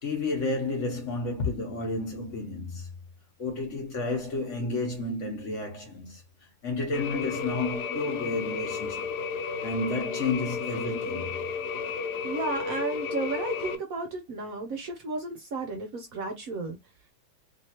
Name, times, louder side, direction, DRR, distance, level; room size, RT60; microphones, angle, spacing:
voice 1, 0.0-2.9 3.4-9.1 9.6-11.4, left 3 dB, 50° left, 1.1 m, -31 dB
sound 1, 6.9-13.8, left 5 dB, 75° left, 1.1 m, -33 dB
voice 2, 12.2-16.8, right 3 dB, 65° right, 0.9 m, -33 dB
3.1 x 3.1 x 2.8 m
omnidirectional pair, 1.9 m